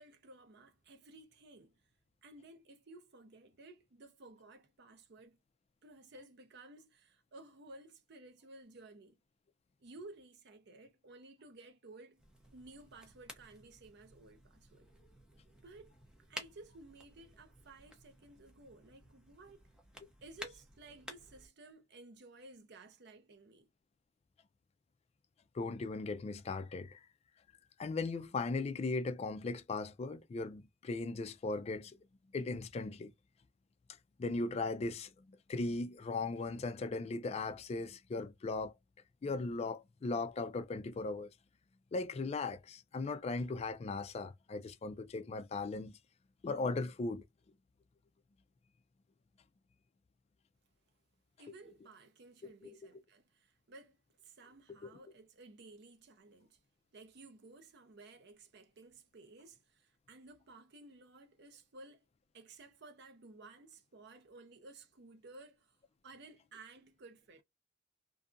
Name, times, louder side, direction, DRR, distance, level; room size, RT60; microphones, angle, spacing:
voice 1, 0.0-1.8 2.2-5.4 5.8-9.2 9.8-12.2 12.5-14.9 15.6-15.9 16.3-19.6 20.2-23.7 51.4-56.6 56.9-62.0 62.3-65.8 66.0-67.4, right 2 dB, 60° right, 0.6 m, -56 dB
sound 1, 12.2-21.5, equal, 5° right, 0.6 m, -54 dB
voice 2, 25.5-27.0 27.8-32.0 32.3-33.1 34.2-35.1 35.5-38.7 39.2-41.3 41.9-46.0 46.4-47.2 51.5-51.6 52.4-52.9 54.7-54.9, left 3 dB, 35° left, 0.3 m, -38 dB
2.6 x 2.4 x 2.4 m
head